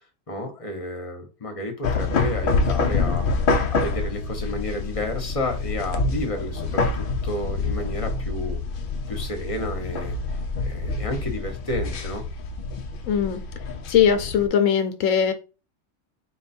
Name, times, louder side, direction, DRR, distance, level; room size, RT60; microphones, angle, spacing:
voice 1, 0.3-3.3 3.7-6.8 7.2-8.6 9.1-10.2 10.6-12.2, left 1 dB, 30° left, 4 dB, 0.9 m, -31 dB
sound 1, 1.8-14.5, left 3 dB, 55° left, 0.6 m, -26 dB
voice 2, 13.1-13.4 13.9-15.3, left 8 dB, 80° left, 8 dB, 1.0 m, -20 dB
4.2 x 2.3 x 4.2 m, 0.33 s
omnidirectional pair, 1.4 m